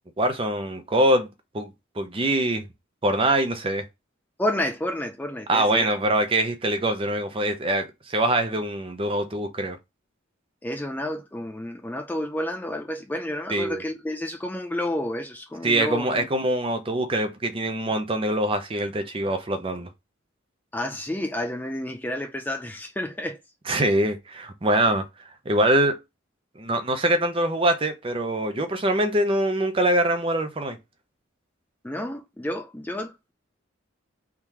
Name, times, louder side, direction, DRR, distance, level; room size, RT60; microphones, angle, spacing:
voice 1, 0.2-1.3 1.5-1.7 2.0-2.6 3.0-3.9 5.5-9.8 13.5-13.8 15.6-19.9 23.7-25.0 25.5-26.0 26.6-30.8, right 1 dB, 30° right, 0.6 m, -23 dB
voice 2, 4.4-5.9 10.6-16.3 20.7-23.4 31.8-33.3, left 1 dB, 10° left, 0.4 m, -30 dB
3.7 x 2.9 x 4.6 m
head